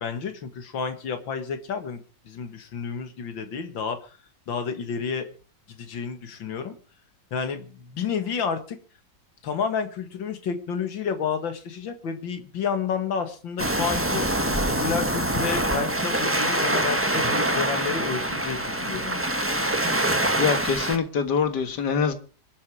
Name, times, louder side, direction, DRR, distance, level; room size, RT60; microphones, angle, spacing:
voice 1, 0.0-4.2 4.5-5.3 5.7-6.7 7.3-8.8 9.4-14.4 14.7-19.3, left 6 dB, 85° left, 2.5 m, -30 dB
Waves surf, 13.6-21.0, right 1 dB, 10° right, 1.2 m, -25 dB
voice 2, 20.4-22.1, left 6 dB, 65° left, 2.2 m, -24 dB
25.5 x 8.7 x 4.8 m
omnidirectional pair, 2.0 m